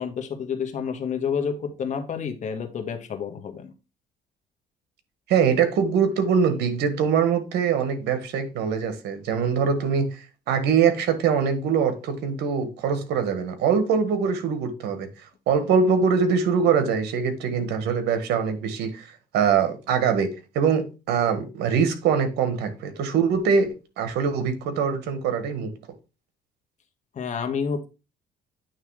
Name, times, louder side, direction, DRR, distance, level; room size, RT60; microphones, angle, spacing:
voice 1, 0.0-3.7 27.1-27.9, left 6 dB, 45° left, 1.5 m, -29 dB
voice 2, 5.3-15.1 15.5-19.1 19.3-20.3 20.5-23.7 24.0-25.7, right 6 dB, 80° right, 1.5 m, -23 dB
9.1 x 3.4 x 4.8 m
cardioid pair, 110°, 17 cm